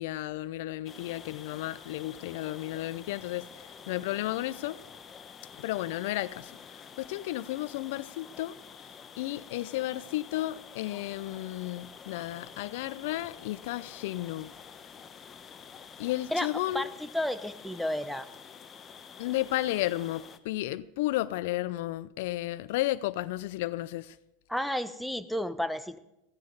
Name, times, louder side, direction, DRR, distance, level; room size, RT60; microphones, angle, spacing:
voice 1, 0.0-3.5 3.9-4.8 5.6-6.5 7.0-8.5 9.2-14.5 16.0-16.9 19.2-24.1, left 16 dB, 65° left, 0.4 m, -33 dB
sound 1, 0.9-20.4, left 6 dB, 30° left, 1.0 m, -49 dB
voice 2, 16.7-18.3 24.5-26.0, left 1 dB, ahead, 0.8 m, -32 dB
15.5 x 14.0 x 4.0 m
hypercardioid pair, 90°, 0 cm